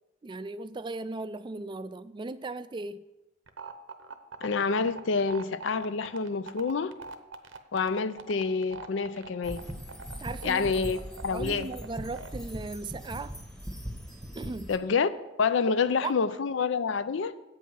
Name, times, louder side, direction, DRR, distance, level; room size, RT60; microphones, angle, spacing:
voice 1, 0.2-3.1 10.2-10.7 11.3-13.3 14.3-14.7 16.0-16.1, right 3 dB, 25° right, 13 dB, 0.4 m, -37 dB
sound 1, 3.5-12.3, right 5 dB, 80° right, 0.8 m, -42 dB
voice 2, 4.4-6.9 7.7-9.6 10.4-11.0 11.2-11.7 14.7-15.1 15.4-17.3, left 5 dB, 70° left, 14 dB, 0.5 m, -27 dB
sound 2, 9.4-14.8, equal, 5° left, 1.1 m, -40 dB
8.3 x 5.5 x 7.6 m, 0.99 s
head